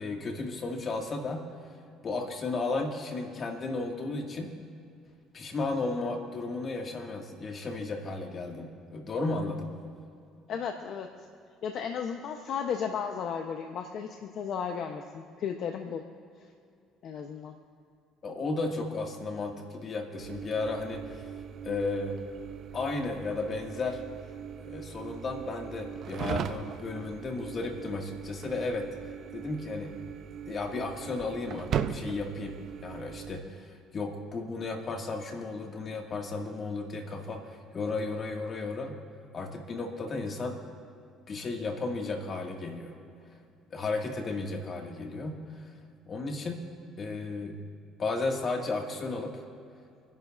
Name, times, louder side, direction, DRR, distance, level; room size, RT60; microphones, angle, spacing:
voice 1, 0.0-1.5 2.0-4.5 5.3-9.7 18.2-21.0 21.6-22.2 22.7-24.0 24.6-28.9 29.3-29.9 30.5-32.6 32.8-38.9 39.3-40.6 41.3-42.9 43.7-45.6 46.1-46.6 47.0-47.6 48.0-49.4, left 3 dB, 40° left, 1 dB, 2.1 m, -34 dB
voice 2, 10.5-11.1 11.6-16.0 16.4-16.5 17.0-17.5, left 7 dB, 60° left, 4 dB, 0.9 m, -34 dB
sound 1, 20.2-33.4, right 8 dB, 55° right, 0.7 m, -39 dB
27.5 x 11.0 x 2.6 m, 2.4 s
supercardioid pair, 95°, 0 cm